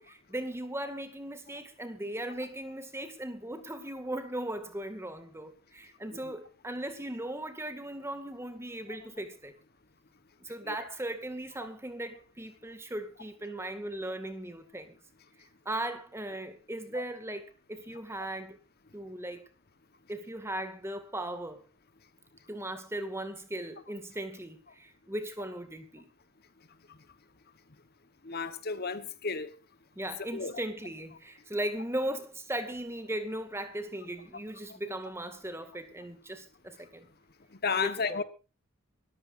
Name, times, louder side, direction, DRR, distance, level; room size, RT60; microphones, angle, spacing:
voice 1, 0.0-9.5 10.4-15.0 15.7-18.6 18.9-19.5 20.1-21.6 22.5-26.1 30.0-37.1 37.8-38.2, right 1 dB, 10° right, 2.1 m, -38 dB
voice 2, 28.2-29.5 30.3-30.5 37.6-38.2, left 5 dB, 45° left, 1.2 m, -32 dB
24.0 x 14.0 x 2.6 m
head